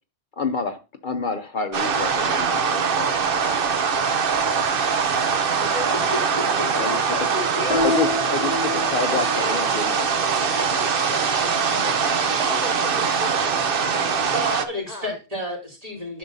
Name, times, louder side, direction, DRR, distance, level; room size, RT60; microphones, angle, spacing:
voice 1, 0.4-3.2 6.8-7.0 7.8-10.1, left 5 dB, 55° left, 7 dB, 0.8 m, -28 dB
sound 1, 1.7-14.6, right 6 dB, 60° right, 1.0 m, -22 dB
voice 2, 5.3-6.3 6.7-8.0 8.8-9.9 10.2-14.4 14.9-15.2, left 1 dB, 40° left, 5 dB, 1.2 m, -36 dB
sound 2, 7.7-9.5, left 3 dB, 10° right, 1.6 m, -27 dB
voice 3, 14.3-16.2, equal, 35° right, -2 dB, 3.0 m, -30 dB
10.5 x 6.4 x 2.7 m, 0.30 s
omnidirectional pair, 1.1 m